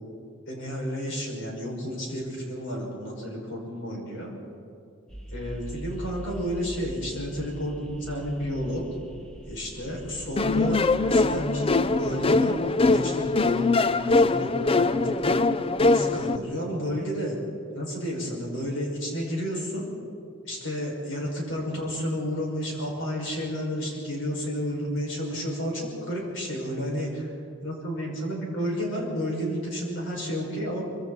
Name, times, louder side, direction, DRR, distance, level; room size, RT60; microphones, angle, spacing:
voice 1, 0.5-4.3 5.3-8.8 9.5-13.7 13.9-15.4 15.8-17.4 17.7-19.9 20.4-27.3 27.6-30.8, equal, 75° left, -2 dB, 6.3 m, -31 dB
sound 1, 5.1-14.3, right 1 dB, 5° left, 1.7 m, -43 dB
sound 2, 10.4-16.4, left 3 dB, 30° left, 0.5 m, -22 dB
25.0 x 24.5 x 4.4 m, 2.5 s
head